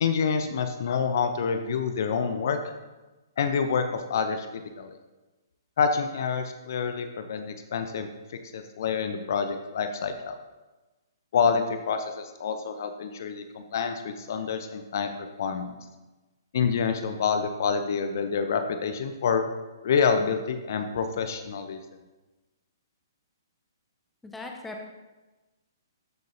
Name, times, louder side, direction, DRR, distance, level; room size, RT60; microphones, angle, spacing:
voice 1, 0.0-2.6 3.4-3.8 4.1-4.5 4.8-4.9 5.8-8.1 8.5-10.4 11.3-15.7 16.5-19.4 19.8-21.8, left 6 dB, 55° left, 7 dB, 0.7 m, -27 dB
voice 2, 24.2-24.8, left 2 dB, 5° left, 1 dB, 1.1 m, -38 dB
13.5 x 6.5 x 2.8 m, 1.1 s
figure-of-eight pair, 125°, 2 cm